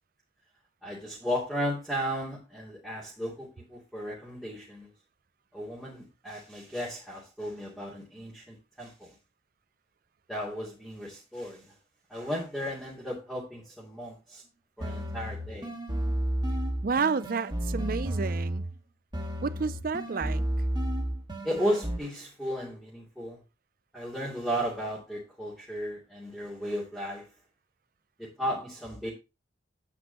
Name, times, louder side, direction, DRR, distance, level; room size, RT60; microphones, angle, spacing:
voice 1, 0.8-4.9 5.5-9.1 10.3-11.6 12.1-14.4 14.8-15.7 21.4-23.4 23.9-27.3 28.2-29.1, equal, 5° right, 2.8 m, -35 dB
sound 1, 14.8-18.8 19.1-22.0, right 1 dB, 25° right, 1.8 m, -32 dB
voice 2, 16.8-18.7 19.4-20.4, right 5 dB, 45° right, 0.5 m, -30 dB
9.6 x 8.4 x 3.0 m
head